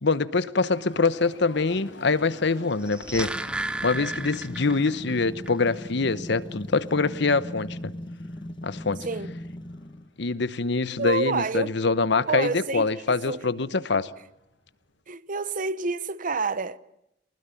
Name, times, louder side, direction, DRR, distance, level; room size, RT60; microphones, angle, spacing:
voice 1, 0.0-3.3 3.8-7.9 8.6-9.1 10.2-14.1, left 4 dB, 65° left, 1.0 m, -24 dB
sound 1, 0.7-15.0, left 2 dB, 85° left, 6.0 m, -52 dB
sound 2, 2.7-5.2 5.5-5.6, right 2 dB, 5° right, 0.9 m, -33 dB
sound 3, 3.3-10.1, left 1 dB, 25° left, 1.0 m, -39 dB
voice 2, 11.0-11.8 12.3-12.9 13.3-13.4 15.1-16.8, right 3 dB, 45° right, 0.9 m, -28 dB
24.0 x 20.0 x 9.1 m
head